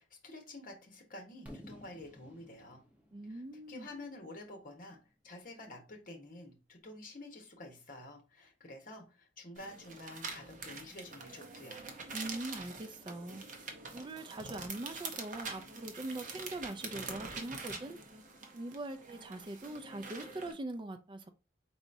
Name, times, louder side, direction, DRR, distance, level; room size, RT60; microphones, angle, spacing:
voice 1, 0.0-2.8 3.3-5.0 5.2-11.8, left 2 dB, 50° left, 2 dB, 1.2 m, -49 dB
Fireworks, 1.5-5.3, equal, 10° right, 1.1 m, -55 dB
voice 2, 3.1-3.9 12.1-13.4 13.9-18.0 18.5-21.3, right 2 dB, 25° right, 8 dB, 0.4 m, -42 dB
sound 1, 9.6-20.5, right 4 dB, 45° right, 0.8 m, -45 dB
4.7 x 4.1 x 2.6 m, 0.31 s
head